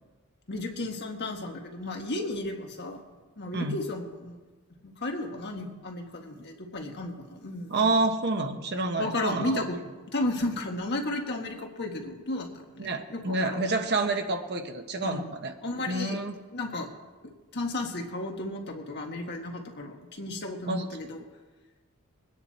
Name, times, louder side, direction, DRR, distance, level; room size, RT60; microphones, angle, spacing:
voice 1, 0.5-3.0 3.4-4.4 4.8-7.9 9.0-9.8 10.1-13.6 15.0-15.3 15.6-16.2 16.5-16.9 17.2-21.2, left 2 dB, 50° left, 2 dB, 1.7 m, -34 dB
voice 2, 7.7-9.6 12.8-15.5 15.9-16.4 20.7-20.9, right 2 dB, 50° right, 5 dB, 1.2 m, -28 dB
22.0 x 9.7 x 4.3 m, 1.3 s
head